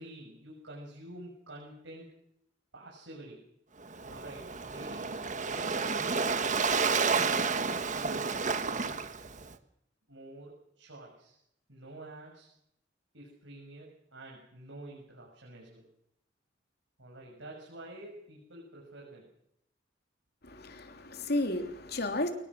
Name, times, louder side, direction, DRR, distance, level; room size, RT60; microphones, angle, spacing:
voice 1, 0.0-2.1 2.7-3.5 4.0-9.1 10.1-11.3 11.7-12.5 13.1-15.9 17.0-19.3, right 1 dB, 90° right, -2 dB, 6.7 m, -48 dB
Waves surf, 3.8-9.5, right 5 dB, 45° right, 1.6 m, -31 dB
voice 2, 20.4-22.3, left 1 dB, 60° left, 5 dB, 3.1 m, -33 dB
28.5 x 20.0 x 6.3 m, 0.75 s
head